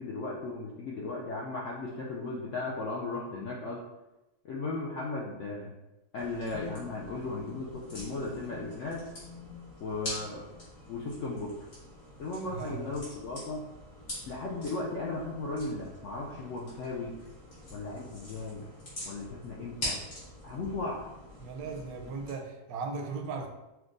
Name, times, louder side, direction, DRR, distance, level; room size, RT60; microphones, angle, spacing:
voice 1, 0.0-3.8 4.4-5.7 6.1-9.1 9.8-10.5 10.9-11.5 12.2-13.6 14.3-17.2 17.7-18.6 19.1-20.0 20.4-21.0, left 3 dB, 85° left, -3 dB, 0.6 m, -36 dB
sound 1, 6.2-22.3, left 1 dB, 55° left, 2.1 m, -44 dB
voice 2, 12.5-12.9 21.4-23.5, right 4 dB, 70° right, 3 dB, 0.9 m, -37 dB
5.8 x 2.2 x 2.5 m, 1.0 s
omnidirectional pair, 1.8 m